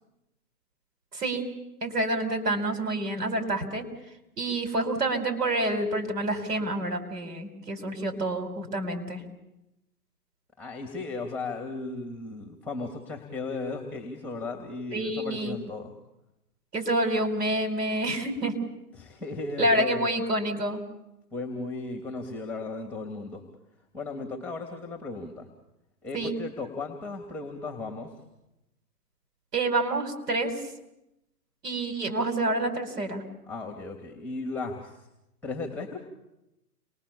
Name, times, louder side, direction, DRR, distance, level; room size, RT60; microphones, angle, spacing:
voice 1, 1.1-1.5 1.8-3.8 4.4-9.2 14.9-15.6 16.7-18.6 19.6-20.8 26.1-26.3 29.5-30.5 31.6-33.2, right 1 dB, 75° right, 5 dB, 5.1 m, -28 dB
voice 2, 10.6-15.9 18.9-20.0 21.3-23.4 23.9-25.5 26.0-28.2 33.5-35.1 35.4-36.0, left 3 dB, 5° left, 4 dB, 3.0 m, -36 dB
29.5 x 22.0 x 7.2 m, 0.92 s
hypercardioid pair, 130°, 47 cm